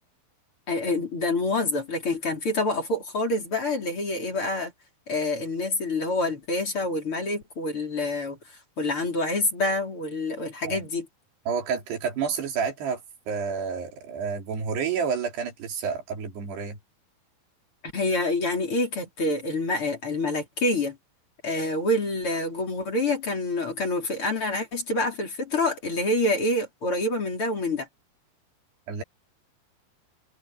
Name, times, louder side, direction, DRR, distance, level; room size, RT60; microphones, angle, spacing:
voice 1, 0.7-4.7 5.1-11.1 17.9-21.0 21.4-27.9, left 2 dB, 30° left, 4.8 m, -27 dB
voice 2, 11.5-13.0 13.3-16.8 28.9-29.0, right 6 dB, 75° right, 5.7 m, -29 dB
omnidirectional pair, 4.8 m